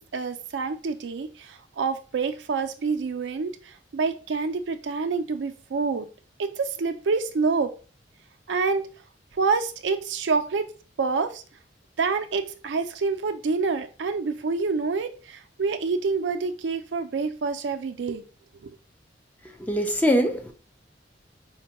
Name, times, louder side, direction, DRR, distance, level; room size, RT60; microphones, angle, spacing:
voice 1, 0.0-6.1 6.4-7.7 8.5-8.8 9.3-10.7 11.0-11.4 12.0-18.2 18.6-18.7, right 4 dB, 85° right, 0.4 m, -27 dB
voice 2, 19.6-20.5, equal, 10° left, 0.5 m, -22 dB
4.5 x 2.2 x 2.8 m
head